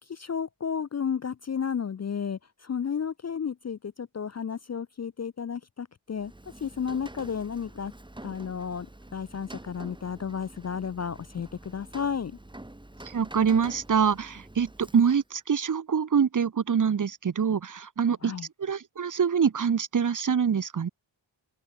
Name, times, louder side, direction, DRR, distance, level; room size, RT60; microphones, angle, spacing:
voice 1, 0.1-6.3 6.6-7.9 8.2-8.9 9.1-12.4 18.2-18.5, left 7 dB, 35° left, 0.5 m, -32 dB
Rain, 6.1-15.4, right 1 dB, 10° right, 2.9 m, -47 dB
voice 2, 13.1-18.3 18.6-20.9, right 7 dB, 40° right, 0.9 m, -25 dB
open air
wide cardioid pair, 160°, 47 cm